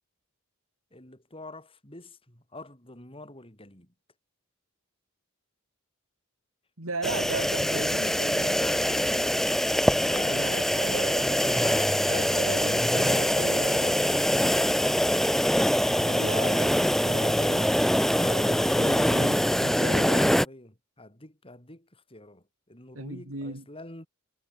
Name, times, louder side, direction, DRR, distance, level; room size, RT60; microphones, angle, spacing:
voice 1, 0.9-3.9 10.0-10.4 11.2-12.1 12.7-13.3 18.1-19.0 20.0-24.1, left 2 dB, 25° left, 7.4 m, -46 dB
voice 2, 6.8-9.4 10.2-11.7 12.1-14.1 16.0-17.8 18.2-20.5 22.9-23.7, right 2 dB, 70° right, 3.9 m, -37 dB
sound 1, 7.0-20.5, equal, ahead, 0.6 m, -24 dB
head